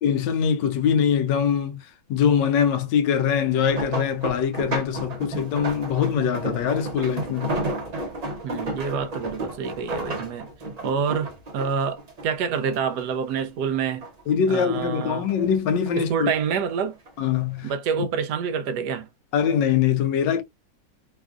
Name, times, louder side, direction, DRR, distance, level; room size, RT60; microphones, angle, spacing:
voice 1, 0.0-7.6 14.3-16.3 17.2-17.7 19.3-20.4, left 8 dB, 85° left, 1.3 m, -23 dB
sound 1, 3.4-13.0 13.4-14.3 14.7-16.1 16.8-17.1 17.5-17.6, right 2 dB, 45° right, 0.5 m, -32 dB
voice 2, 8.4-10.5 10.8-14.0 14.5-15.3 16.0-17.0 17.6-19.1, right 6 dB, 75° right, 1.1 m, -27 dB
3.4 x 2.4 x 2.3 m
omnidirectional pair, 1.9 m